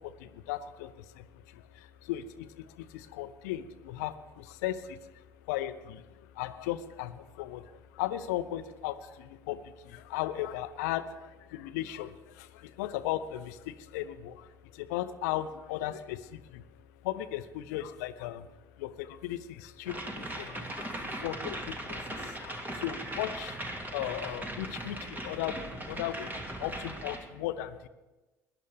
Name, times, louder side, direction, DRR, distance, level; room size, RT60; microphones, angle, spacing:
voice 1, 0.0-16.6 17.0-18.5 18.8-23.6 23.9-27.9, left 13 dB, 65° left, 13 dB, 0.7 m, -37 dB
sound 1, 19.9-27.2, right 1 dB, 20° right, 2.3 m, -39 dB
21.0 x 11.0 x 3.4 m, 1.1 s
figure-of-eight pair, 55°, 10 cm